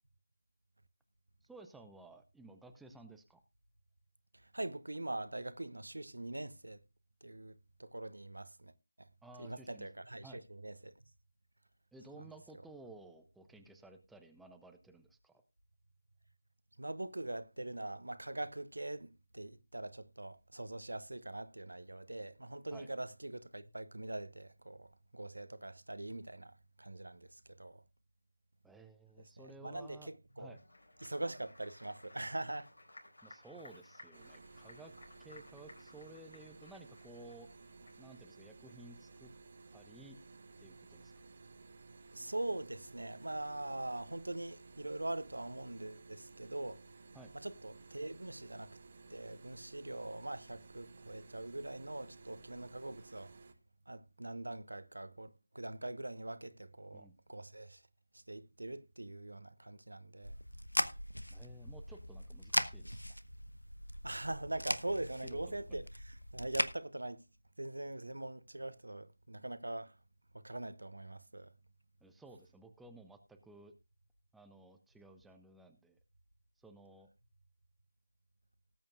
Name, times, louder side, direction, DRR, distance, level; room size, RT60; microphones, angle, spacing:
voice 1, 1.4-3.4 9.2-9.9 10.2-10.4 11.9-15.3 22.7-22.9 28.6-30.1 30.4-30.6 33.2-34.9 35.2-37.5 38.0-39.3 39.7-40.2 40.6-41.1 47.1-47.3 56.9-57.1 61.3-63.2 65.2-65.8 72.0-73.7 74.3-76.0 76.6-77.1, right 2 dB, ahead, 0.5 m, -55 dB
voice 2, 4.3-6.8 7.2-8.7 9.0-9.1 9.4-10.9 12.2-12.3 16.8-27.8 29.4-30.6 31.0-32.7 42.1-46.8 47.3-48.8 49.1-53.3 53.9-57.8 58.1-60.3 64.0-67.2 67.6-70.0 70.3-71.5, right 2 dB, 65° right, 1.0 m, -43 dB
Applause, 30.4-38.2, left 2 dB, 65° left, 4.3 m, -59 dB
sound 1, 34.1-53.5, right 3 dB, 35° right, 1.1 m, -57 dB
sound 2, 60.2-66.7, equal, 90° left, 1.1 m, -39 dB
19.0 x 8.7 x 2.4 m
figure-of-eight pair, 160°, 0 cm